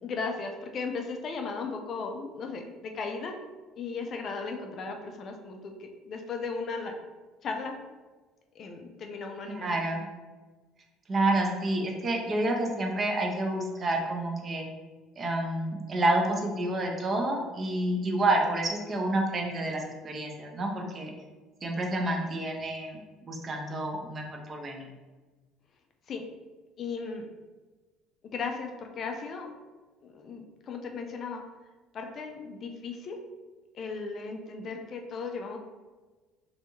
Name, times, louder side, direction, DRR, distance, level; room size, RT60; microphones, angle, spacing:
voice 1, 0.0-3.3 3.8-6.9 7.4-7.8 8.5-9.8 26.1-26.3 26.8-27.3 28.3-29.5 30.0-31.4 31.9-33.2 33.7-35.6, left 4 dB, 35° left, 3 dB, 0.4 m, -36 dB
voice 2, 9.5-10.0 11.1-14.7 15.2-21.1 21.6-24.9, right 1 dB, 25° right, 1 dB, 0.5 m, -29 dB
3.4 x 2.6 x 2.9 m, 1.3 s
cardioid pair, 150°, 0 cm